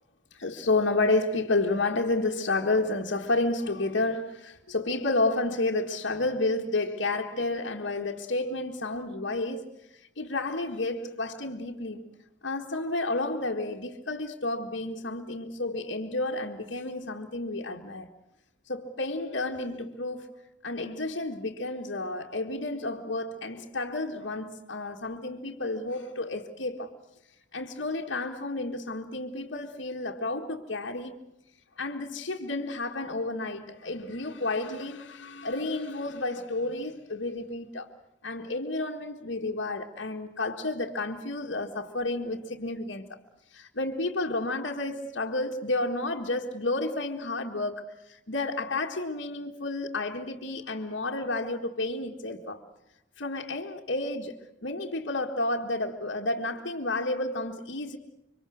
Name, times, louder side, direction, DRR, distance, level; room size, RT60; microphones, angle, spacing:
voice 1, 0.3-9.6 10.2-12.0 12.4-18.1 18.7-20.3 20.6-26.9 27.5-31.2 31.8-37.9 38.2-43.2 43.5-52.6 53.2-58.0, left 2 dB, 90° left, 1.8 m, -31 dB
26.0 x 24.5 x 6.4 m
head